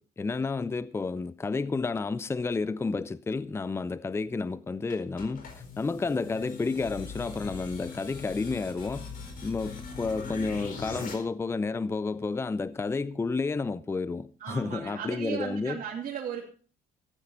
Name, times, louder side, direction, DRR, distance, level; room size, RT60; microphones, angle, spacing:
voice 1, 0.2-5.5 5.8-9.1 9.4-15.8, left 4 dB, 15° left, 0.6 m, -31 dB
sound 1, 4.9-11.1, left 4 dB, 55° left, 4.5 m, -41 dB
voice 2, 14.4-16.4, right 8 dB, 55° right, 2.8 m, -36 dB
14.5 x 9.1 x 5.5 m
cardioid pair, 110°, 17 cm